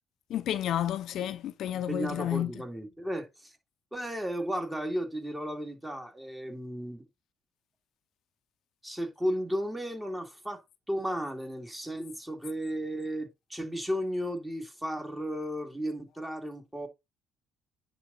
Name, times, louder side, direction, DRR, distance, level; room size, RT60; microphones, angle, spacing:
voice 1, 0.3-2.5, left 11 dB, 65° left, 0.6 m, -31 dB
voice 2, 1.7-3.6 3.9-7.1 8.8-10.6 10.9-16.9, equal, 10° right, 2.5 m, -34 dB
10.0 x 3.9 x 3.9 m
cardioid pair, 90°, 0 cm